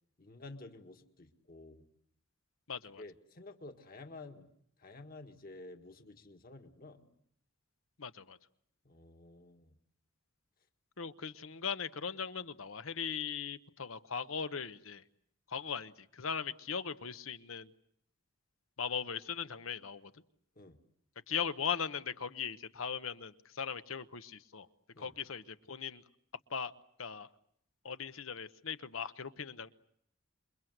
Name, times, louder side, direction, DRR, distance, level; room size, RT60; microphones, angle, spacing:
voice 1, 0.2-1.9 3.0-4.5 4.8-7.1 8.8-9.8 20.6-20.8 24.9-25.1, left 2 dB, 45° left, 6 dB, 1.8 m, -51 dB
voice 2, 2.7-3.0 8.0-8.4 11.0-15.0 15.5-17.7 18.8-20.1 21.3-24.7 25.0-26.0 26.5-26.7 27.0-27.3 27.8-29.7, left 6 dB, 85° left, 12 dB, 1.0 m, -39 dB
28.0 x 23.5 x 7.9 m, 0.69 s
head